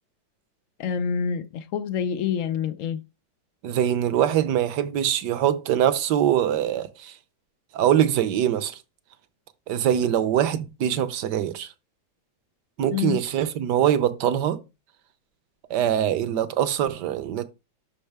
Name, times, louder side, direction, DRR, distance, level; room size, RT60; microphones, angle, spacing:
voice 1, 0.8-3.0 12.9-13.2, left 7 dB, 85° left, 0.7 m, -27 dB
voice 2, 3.6-7.1 7.7-8.8 9.7-11.7 12.8-14.6 15.7-17.4, right 10 dB, 70° right, 1.3 m, -23 dB
12.0 x 5.3 x 3.4 m
omnidirectional pair, 2.1 m